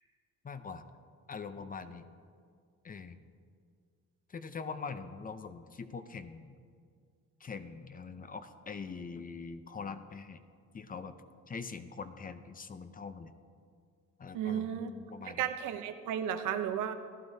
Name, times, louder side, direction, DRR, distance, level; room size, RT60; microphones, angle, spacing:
voice 1, 0.4-0.8 1.3-2.1 2.8-3.2 4.3-6.6 7.4-10.4 10.7-11.2 11.5-13.3 14.2-15.5, left 5 dB, 30° left, 11 dB, 0.6 m, -43 dB
voice 2, 14.3-14.9 15.4-16.9, right 9 dB, 90° right, 8 dB, 0.7 m, -33 dB
15.0 x 11.5 x 2.7 m, 2.1 s
cardioid pair, 90°, 30 cm